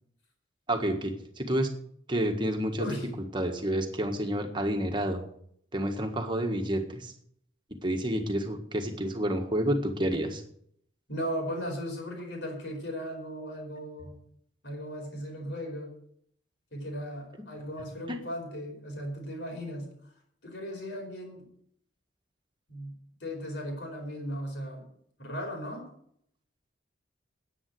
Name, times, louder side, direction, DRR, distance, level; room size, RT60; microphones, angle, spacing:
voice 1, 0.7-1.7 2.1-2.9 3.3-5.2 5.7-7.1 7.8-10.4 18.1-18.2, right 1 dB, 25° right, 4 dB, 1.6 m, -29 dB
voice 2, 11.1-14.1 14.6-15.9 16.7-20.1 20.4-21.4 22.7-22.9 23.2-24.9 25.2-25.9, equal, 65° left, 2 dB, 4.7 m, -37 dB
9.8 x 9.2 x 7.8 m, 0.68 s
head